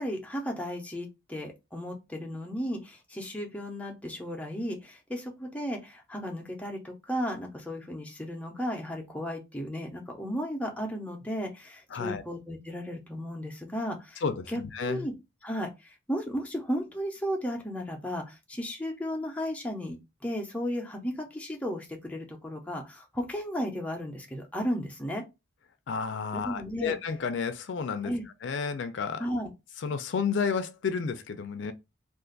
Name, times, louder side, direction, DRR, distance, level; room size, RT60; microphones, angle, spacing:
voice 1, 0.0-15.1 15.4-25.2 26.3-26.9 28.0-28.2 29.2-29.5, equal, 5° left, 0.6 m, -34 dB
voice 2, 11.9-12.2 14.2-15.1 25.9-28.1 28.4-29.2 29.8-31.7, left 5 dB, 75° left, 0.4 m, -31 dB
2.5 x 2.4 x 3.7 m
head